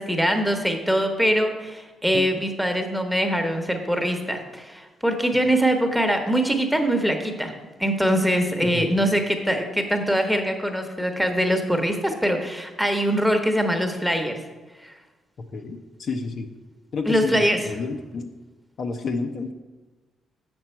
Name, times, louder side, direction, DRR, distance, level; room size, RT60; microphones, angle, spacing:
voice 1, 0.0-7.5 7.8-14.4 14.8-14.9 17.1-17.6, equal, ahead, 5 dB, 1.0 m, -23 dB
voice 2, 15.5-16.5 16.9-18.3 18.8-19.5, left 4 dB, 55° left, 4 dB, 0.6 m, -30 dB
7.2 x 6.1 x 4.4 m, 1.2 s
cardioid pair, 90°, 0 cm